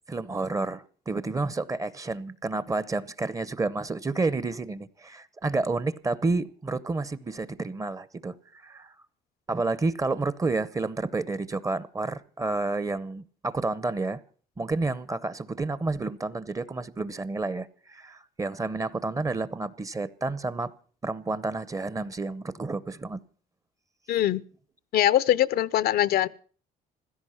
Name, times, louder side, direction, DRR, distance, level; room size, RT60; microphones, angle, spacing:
voice 1, 0.1-8.9 9.5-14.2 14.6-20.7 21.0-23.2, right 3 dB, 20° right, 0.8 m, -30 dB
voice 2, 24.1-24.4 24.9-26.3, left 12 dB, 65° left, 0.6 m, -22 dB
16.0 x 13.5 x 5.7 m
cardioid pair, 110°, 17 cm